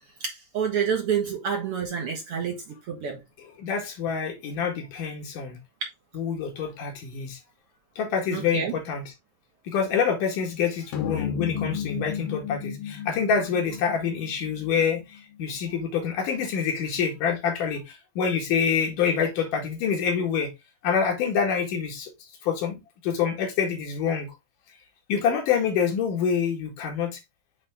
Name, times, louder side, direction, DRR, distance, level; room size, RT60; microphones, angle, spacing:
voice 1, 0.2-3.2 8.3-8.7, right 7 dB, 60° right, 1.7 m, -28 dB
voice 2, 3.6-5.6 6.1-7.4 8.0-9.0 9.7-20.5 20.8-22.1 22.4-24.3 25.1-27.2, left 6 dB, 80° left, 3.3 m, -26 dB
sound 1, 10.9-15.5, left 9 dB, 60° left, 1.5 m, -33 dB
8.4 x 3.4 x 3.4 m
omnidirectional pair, 3.7 m